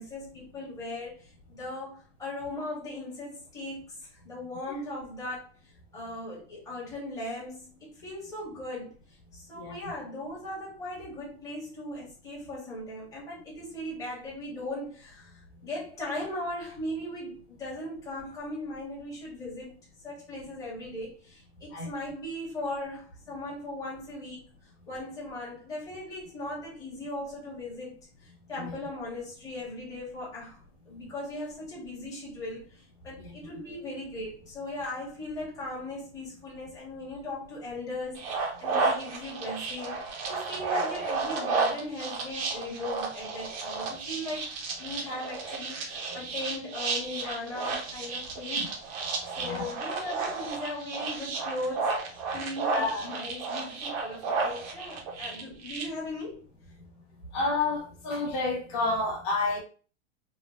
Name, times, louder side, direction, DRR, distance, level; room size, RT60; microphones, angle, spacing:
voice 1, 0.0-9.0 9.3-24.4 24.9-44.5 44.8-49.1 49.4-51.9 52.3-52.7 53.0-56.4, left 1 dB, 10° left, 1.0 m, -38 dB
voice 2, 33.2-33.5 48.6-48.7 49.4-49.6 52.7-53.0 57.3-59.6, left 3 dB, 35° left, 1.2 m, -30 dB
sound 1, 38.2-55.8, right 4 dB, 30° right, 0.6 m, -32 dB
3.5 x 2.1 x 3.0 m
supercardioid pair, 165°, 33 cm